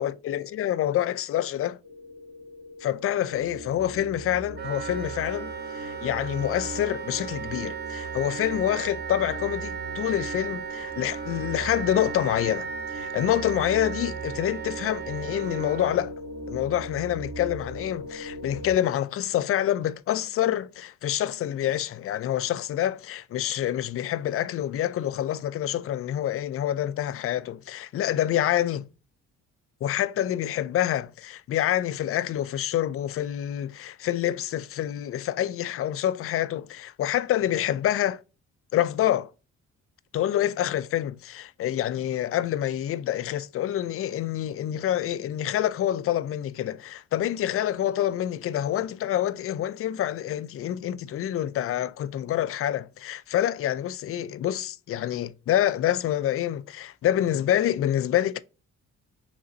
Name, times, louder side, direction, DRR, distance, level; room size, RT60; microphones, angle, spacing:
voice 1, 0.0-1.8 2.8-16.1 16.5-28.9 29.8-38.2 38.7-39.3 40.1-58.4, left 11 dB, 50° left, 0.4 m, -27 dB
sound 1, 1.8-18.7, right 1 dB, 60° right, 2.0 m, -40 dB
Wind instrument woodwind instrument, 4.6-16.0, right 7 dB, 35° right, 0.7 m, -36 dB
3.8 x 3.4 x 3.9 m
cardioid pair, 90°, 30 cm